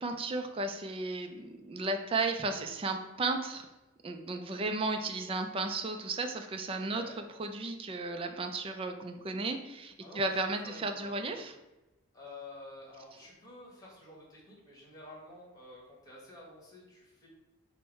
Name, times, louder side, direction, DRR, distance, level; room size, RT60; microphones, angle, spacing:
voice 1, 0.0-3.7 4.0-7.0 7.4-11.5, right 3 dB, 25° right, 5 dB, 0.3 m, -34 dB
voice 2, 10.0-10.4 10.6-11.5 12.1-17.3, left 2 dB, 20° left, -4 dB, 1.3 m, -50 dB
4.6 x 2.1 x 4.5 m, 1.0 s
head